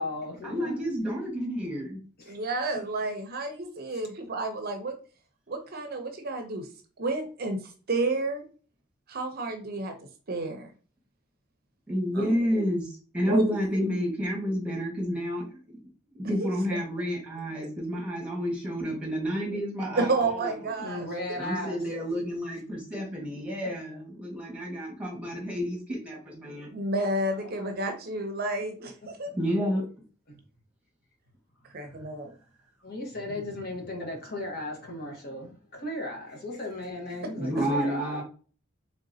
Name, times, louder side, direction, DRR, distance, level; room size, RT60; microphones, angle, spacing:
voice 1, 0.0-0.8 2.3-2.4 20.8-21.8 27.4-27.9 30.3-30.4 32.8-38.2, left 1 dB, 50° left, 1.1 m, -36 dB
voice 2, 0.5-2.0 11.9-15.4 16.1-20.7 21.4-26.7 29.3-29.8 37.4-38.2, equal, 5° right, 1.3 m, -30 dB
voice 3, 2.3-5.0 5.5-6.7 7.0-7.6 7.9-8.4 9.1-9.9 10.3-10.7 12.1-12.3 13.3-13.4 16.4-16.5 20.0-21.1 26.7-29.3 31.7-32.3, right 2 dB, 45° right, 0.6 m, -30 dB
3.8 x 3.5 x 2.7 m
head